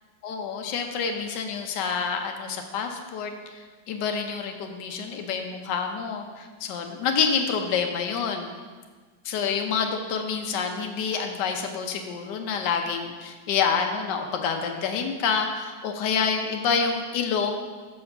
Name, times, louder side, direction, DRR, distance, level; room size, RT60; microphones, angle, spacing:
voice 1, 0.2-3.3 3.9-8.5 9.2-17.5, left 6 dB, 75° left, 4 dB, 1.4 m, -27 dB
6.2 x 4.8 x 6.5 m, 1.4 s
omnidirectional pair, 2.0 m